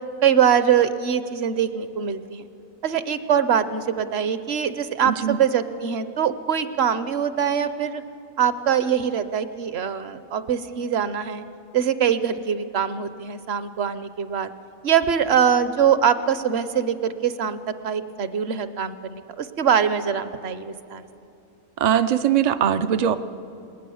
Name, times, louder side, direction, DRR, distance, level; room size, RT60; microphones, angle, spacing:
voice 1, 0.2-2.5 2.8-8.0 8.4-11.4 11.7-14.5 14.8-17.6 17.8-21.0, right 8 dB, 55° right, 12 dB, 0.9 m, -23 dB
voice 2, 5.0-5.4 21.8-23.2, right 9 dB, 75° right, 10 dB, 0.4 m, -21 dB
20.0 x 19.5 x 7.1 m, 2.7 s
omnidirectional pair, 1.4 m